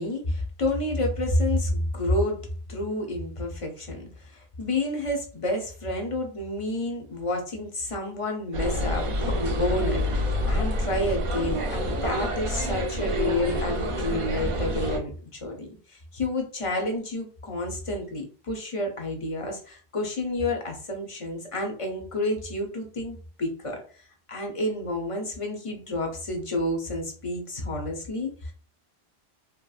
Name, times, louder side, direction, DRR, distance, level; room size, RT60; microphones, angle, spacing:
voice 1, 0.0-2.4 2.7-28.5, left 1 dB, 40° left, 2 dB, 0.5 m, -30 dB
sound 1, 8.5-15.0, equal, 55° right, 0.3 m, -27 dB
2.8 x 2.2 x 2.3 m, 0.40 s
omnidirectional pair, 1.1 m